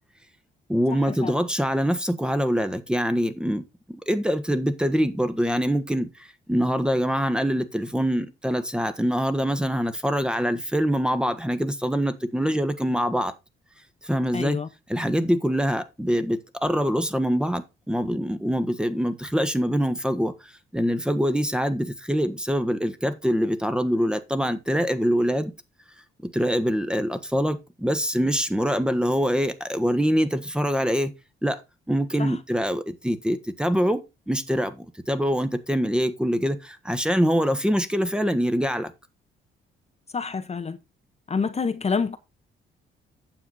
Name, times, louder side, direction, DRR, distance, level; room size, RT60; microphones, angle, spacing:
voice 1, 0.7-13.3 14.0-14.6 14.9-25.5 26.2-31.1 31.4-31.6 31.9-38.9, equal, 5° right, 1.4 m, -24 dB
voice 2, 14.3-14.7 32.2-32.4 40.1-40.8 41.3-42.2, left 5 dB, 35° left, 1.1 m, -27 dB
9.3 x 7.2 x 4.0 m
cardioid pair, 90°, 20 cm